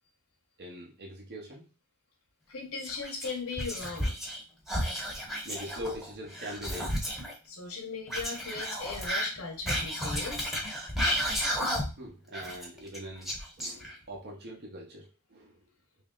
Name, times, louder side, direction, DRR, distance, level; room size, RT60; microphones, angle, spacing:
voice 1, 0.6-1.7 5.4-7.0 12.0-15.6, equal, 50° right, -1 dB, 0.8 m, -42 dB
voice 2, 2.5-4.2 7.4-10.5, left 4 dB, 70° left, 0 dB, 0.9 m, -38 dB
Whispering, 2.8-4.4 4.7-7.3 8.1-12.1 12.3-14.1, equal, ahead, 0.8 m, -32 dB
3.0 x 2.7 x 3.7 m, 0.31 s
head